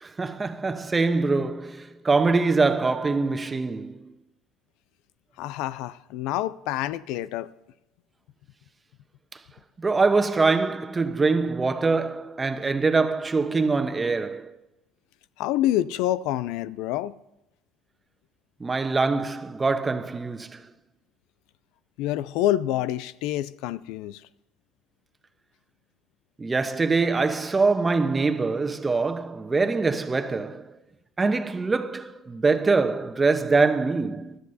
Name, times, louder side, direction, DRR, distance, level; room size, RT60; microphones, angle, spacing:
voice 1, 0.0-4.1 9.8-14.5 18.6-20.6 26.4-30.7 31.2-34.4, right 4 dB, 25° right, 1.0 m, -24 dB
voice 2, 5.4-7.5 15.4-17.1 22.0-24.2, left 13 dB, 70° left, 0.4 m, -27 dB
20.5 x 13.0 x 2.8 m
hypercardioid pair, 75°, 0 cm